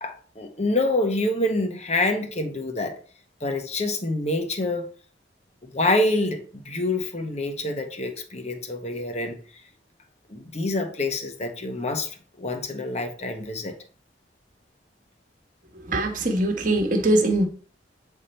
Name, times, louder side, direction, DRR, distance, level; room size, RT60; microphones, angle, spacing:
voice 1, 0.0-3.0 3.4-4.9 5.6-9.4 10.3-13.7, left 2 dB, 35° left, 1.0 m, -26 dB
voice 2, 15.9-17.5, right 1 dB, 45° right, 1.2 m, -22 dB
8.2 x 3.6 x 4.3 m
head